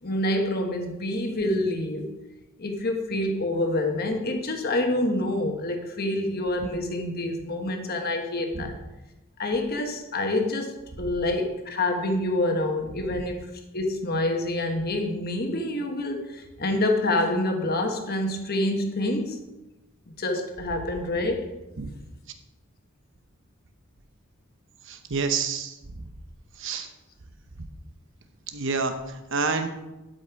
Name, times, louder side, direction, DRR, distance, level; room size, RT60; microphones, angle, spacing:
voice 1, 0.0-2.1 2.6-8.8 9.4-19.4 20.2-21.5, left 1 dB, 45° left, 4 dB, 1.2 m, -27 dB
voice 2, 24.9-25.7 26.6-26.9 28.5-28.9 29.3-29.7, right 4 dB, 60° right, 8 dB, 0.9 m, -27 dB
11.5 x 5.3 x 4.7 m, 1.0 s
head